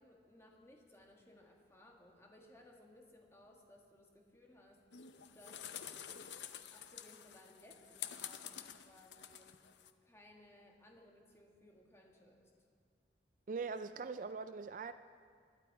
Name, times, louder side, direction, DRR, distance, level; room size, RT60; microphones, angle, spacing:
voice 1, 0.0-4.8 5.3-6.2 6.7-9.5 10.0-12.5, left 1 dB, 15° left, 0 dB, 1.6 m, -62 dB
sound 1, 4.9-9.9, left 9 dB, 75° left, 0.7 m, -49 dB
voice 2, 13.5-14.9, right 4 dB, 45° right, 11 dB, 0.3 m, -41 dB
20.5 x 11.5 x 4.8 m, 2.1 s
head